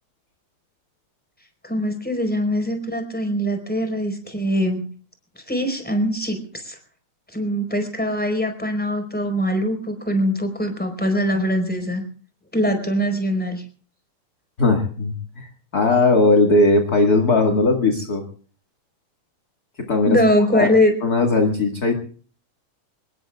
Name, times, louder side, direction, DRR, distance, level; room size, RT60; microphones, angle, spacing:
voice 1, 1.6-4.8 5.5-6.8 7.3-12.0 12.5-13.6 20.0-20.9, equal, 5° left, 6 dB, 4.4 m, -22 dB
voice 2, 14.6-18.2 19.9-20.2 20.5-20.7 21.0-21.9, left 3 dB, 35° left, 3 dB, 2.2 m, -18 dB
26.0 x 21.0 x 2.4 m, 0.43 s
omnidirectional pair, 3.4 m